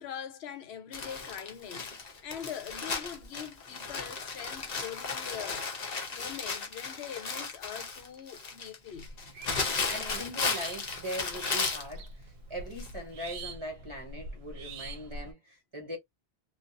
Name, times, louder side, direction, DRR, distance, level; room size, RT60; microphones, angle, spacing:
voice 1, 0.0-1.9 2.2-9.1, left 9 dB, 75° left, 0.8 m, -43 dB
Crumpling crinkling, 0.9-11.9 12.8-12.9 13.3-13.4, left 4 dB, 45° left, 0.7 m, -35 dB
sound 1, 8.9-15.3, right 3 dB, 80° right, 0.8 m, -45 dB
voice 2, 9.9-16.0, equal, 30° right, 1.0 m, -40 dB
2.5 x 2.3 x 2.5 m
omnidirectional pair, 1.1 m